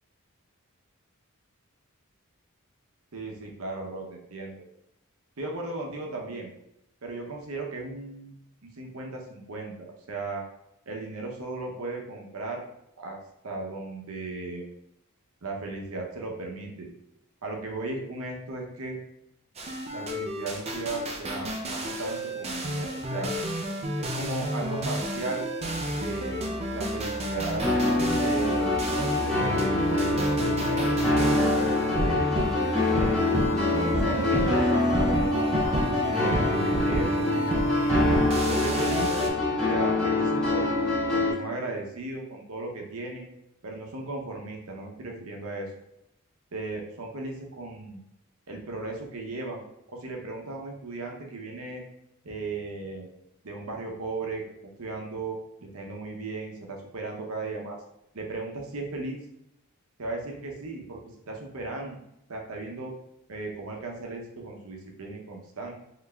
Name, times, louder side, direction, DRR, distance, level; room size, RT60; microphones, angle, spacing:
voice 1, 3.1-4.6 5.4-6.5 7.0-8.3 8.8-10.4 10.9-12.6 13.0-13.2 13.4-14.7 15.4-16.9 17.4-19.0 19.9-23.3 24.0-25.5 26.0-27.6 28.1-32.3 32.9-33.4 33.7-36.4 36.8-37.3 37.7-39.3 39.7-40.7 41.1-43.3 43.6-45.7 46.5-48.0 48.5-49.6 49.9-51.8 52.2-53.1 53.4-54.4 54.8-57.8 58.1-59.2 60.0-62.0 62.3-62.9 63.3-65.7, right 2 dB, 75° right, 0 dB, 0.7 m, -36 dB
sound 1, 19.6-39.3, equal, 30° right, 0.4 m, -30 dB
sound 2, 27.6-41.3, left 2 dB, 5° left, 1.3 m, -25 dB
3.9 x 3.2 x 2.3 m, 0.84 s
head